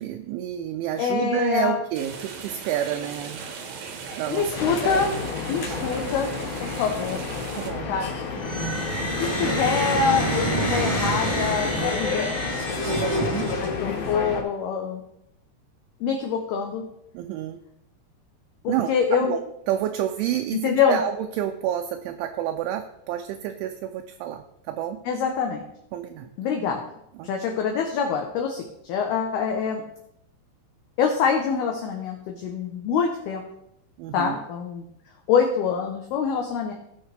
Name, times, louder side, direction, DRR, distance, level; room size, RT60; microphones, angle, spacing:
voice 1, 0.0-3.4 4.2-5.0 5.7-5.9 7.6-8.0 12.8-13.5 17.1-17.6 18.7-18.9 19.2-19.4 19.7-25.0 25.9-26.3 27.2-27.3 34.0-34.4, right 11 dB, 80° right, 5 dB, 2.8 m, -29 dB
voice 2, 1.0-1.8 4.3-5.1 5.5-6.3 6.6-7.2 7.9-8.1 9.2-12.3 13.6-15.0 16.0-16.8 18.6-19.3 20.6-21.0 25.1-25.6 26.4-26.9 27.2-29.8 31.0-33.4 34.1-34.8 35.3-36.7, left 6 dB, 80° left, 2 dB, 2.3 m, -25 dB
sound 1, 1.9-7.7, right 5 dB, 65° right, 2.3 m, -38 dB
sound 2, 4.5-14.4, left 5 dB, 60° left, 2.7 m, -31 dB
sound 3, 8.4-14.0, right 1 dB, 10° left, 2.4 m, -27 dB
17.5 x 6.5 x 3.4 m, 0.79 s
omnidirectional pair, 5.7 m